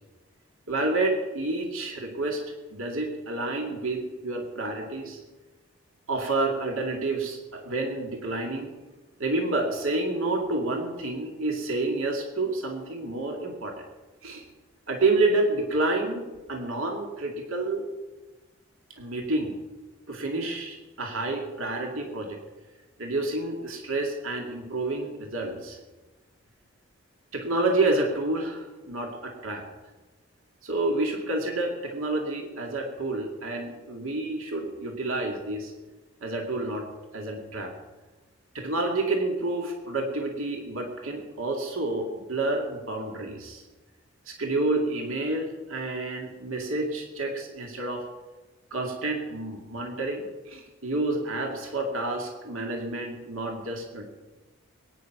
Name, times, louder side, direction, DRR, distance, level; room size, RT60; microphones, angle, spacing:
voice 1, 0.7-2.4 2.7-5.2 6.1-8.7 9.2-13.8 14.2-14.5 14.9-17.9 19.0-19.6 20.1-22.4 23.0-25.8 27.3-29.6 30.6-35.7 36.2-36.9 37.1-37.7 38.5-43.6 44.3-48.1 48.7-54.0, right 2 dB, 70° right, 2 dB, 2.3 m, -29 dB
21.5 x 9.8 x 6.0 m, 1.2 s
head